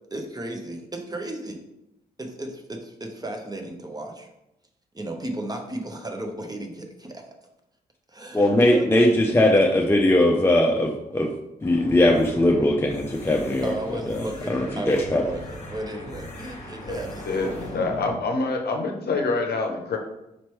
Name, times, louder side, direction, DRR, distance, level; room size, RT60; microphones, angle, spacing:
voice 1, 0.1-1.6 2.2-4.3 4.9-7.3 8.1-8.9 13.6-17.6, right 1 dB, 20° right, 4 dB, 0.8 m, -34 dB
voice 2, 8.3-11.3 11.6-13.7 14.1-14.2 14.5-15.2, left 1 dB, 10° left, 0 dB, 0.6 m, -20 dB
sound 1, 11.6-18.2, left 1 dB, 35° left, 1.2 m, -39 dB
voice 3, 17.3-20.0, left 3 dB, 55° left, 3 dB, 0.7 m, -26 dB
4.3 x 3.0 x 3.0 m, 0.89 s
hypercardioid pair, 40°, 20 cm